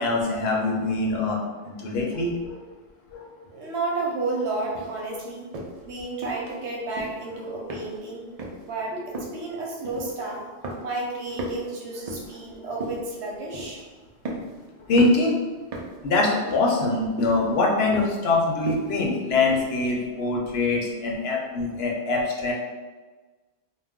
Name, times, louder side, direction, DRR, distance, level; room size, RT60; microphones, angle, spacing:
voice 1, 0.0-1.4 1.6-2.6 3.1-3.3 8.9-9.0 14.9-15.4 16.0-22.5, left 3 dB, 70° left, -1 dB, 0.8 m, -23 dB
voice 2, 3.5-5.5 5.8-8.3 8.7-10.4 10.8-13.8, right 3 dB, 85° right, -1 dB, 1.0 m, -31 dB
sound 1, 4.7-5.0 5.5-5.8 6.2-6.6 6.9-7.3 7.7-8.1 8.4-8.7 9.1-9.5 9.8-10.3 10.6-11.1 11.3-12.4 12.8-13.1 13.5-13.8 14.3-14.6 15.0-15.3 15.7-16.0 16.5-16.9 17.2-17.4 17.9-18.3 18.7-19.0 19.5-19.6, right 1 dB, 60° right, 0.4 m, -35 dB
2.3 x 2.2 x 3.4 m, 1.3 s
omnidirectional pair, 1.1 m